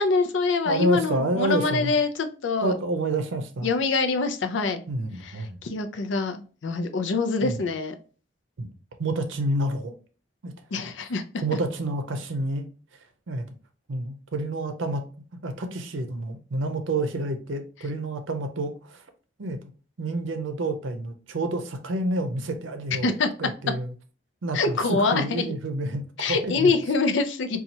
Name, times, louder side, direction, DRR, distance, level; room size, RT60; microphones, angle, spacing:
voice 1, 0.0-2.7 3.6-4.8 5.2-7.9 10.7-11.2 23.0-23.3 24.5-25.4 26.2-27.6, left 4 dB, 80° left, 0.5 m, -25 dB
voice 2, 0.7-1.9 2.6-3.7 4.9-5.6 7.4-7.6 8.6-8.7 9.0-9.9 10.4-10.5 11.4-12.7 13.3-13.4 13.9-15.0 15.4-19.0 19.4-19.6 20.0-23.9 24.4-26.7, right 1 dB, 90° right, 0.6 m, -28 dB
4.1 x 2.3 x 2.8 m
head